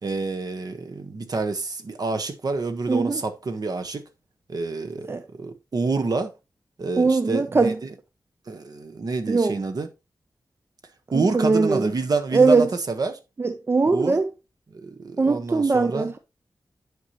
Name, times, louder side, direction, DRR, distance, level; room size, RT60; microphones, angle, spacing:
voice 1, 0.0-4.0 4.5-6.3 6.8-7.9 8.5-9.9 11.1-13.2 13.8-14.2 14.7-16.1, right 3 dB, 60° right, 1.2 m, -28 dB
voice 2, 2.9-3.2 5.1-5.2 7.0-7.8 9.3-9.6 11.1-11.9 12.3-12.7 13.4-14.3 15.2-16.2, right 4 dB, 35° right, 0.5 m, -20 dB
9.6 x 5.5 x 2.9 m
wide cardioid pair, 120°, 7 cm